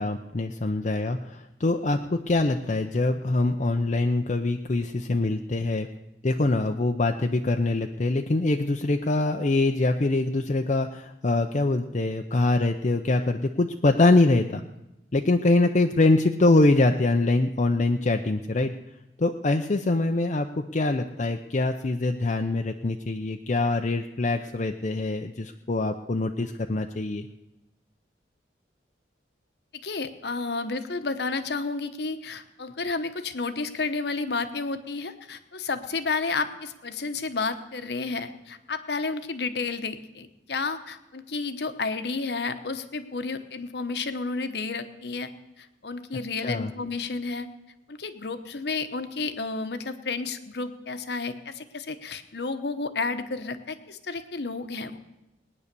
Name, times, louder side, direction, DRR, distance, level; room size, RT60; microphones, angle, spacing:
voice 1, 0.0-5.9 6.2-14.6 15.1-18.8 19.2-27.3 46.4-46.7, left 2 dB, 40° left, 4 dB, 0.6 m, -24 dB
voice 2, 29.8-47.5 47.9-55.0, left 4 dB, 65° left, 9 dB, 1.0 m, -31 dB
19.0 x 9.7 x 6.8 m, 0.95 s
head